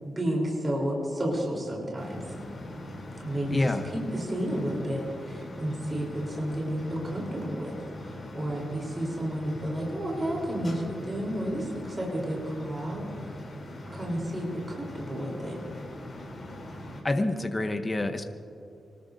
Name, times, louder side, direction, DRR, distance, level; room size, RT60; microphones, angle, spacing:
voice 1, 0.0-2.2 3.2-7.8 8.0-13.3 13.9-15.6, right 1 dB, 25° right, -3 dB, 3.7 m, -31 dB
sound 1, 2.0-17.0, left 1 dB, 40° left, 3.3 m, -42 dB
voice 2, 3.5-3.9 17.0-18.2, left 2 dB, 20° left, 7 dB, 0.9 m, -27 dB
24.5 x 19.5 x 2.7 m, 2.7 s
wide cardioid pair, 140°, 0 cm